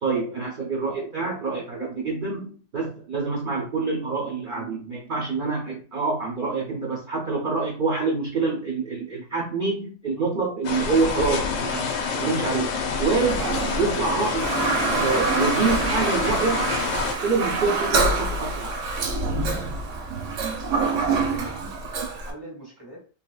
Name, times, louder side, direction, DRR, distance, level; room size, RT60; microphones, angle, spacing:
voice 1, 0.0-11.9 12.2-12.7 13.0-13.5 13.8-14.5 15.0-16.6 17.1-18.7, right 4 dB, 50° right, 0.7 m, -26 dB
sound 1, 10.6-17.1, left 5 dB, 80° left, 1.0 m, -27 dB
Toilet flush, 13.2-22.3, right 3 dB, 70° right, 1.0 m, -26 dB
voice 2, 20.6-21.8 22.1-23.0, equal, 20° left, 1.1 m, -40 dB
3.2 x 2.8 x 2.3 m
omnidirectional pair, 1.3 m